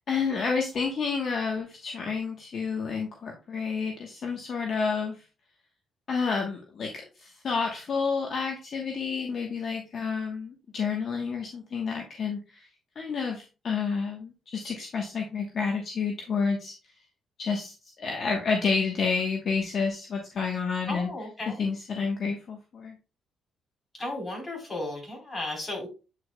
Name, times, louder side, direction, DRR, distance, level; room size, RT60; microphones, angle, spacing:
voice 1, 0.1-5.2 6.1-12.7 12.9-16.7 17.4-21.1 21.6-22.9, left 5 dB, 55° left, 2 dB, 1.2 m, -30 dB
voice 2, 20.9-21.6 23.9-25.9, left 2 dB, 30° left, 0 dB, 3.8 m, -34 dB
8.3 x 5.0 x 2.3 m, 0.31 s
cardioid pair, 90°, 0 cm